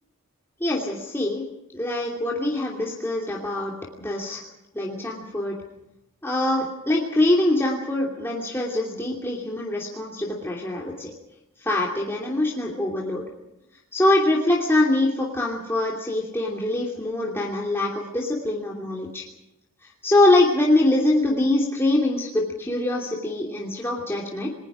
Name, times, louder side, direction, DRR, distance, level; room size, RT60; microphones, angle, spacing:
voice 1, 0.6-1.4 1.7-4.4 4.7-5.6 6.2-11.1 11.6-13.2 13.9-19.2 19.8-24.5, left 1 dB, 10° left, -3 dB, 2.8 m, -23 dB
29.0 x 21.0 x 5.0 m, 0.89 s
head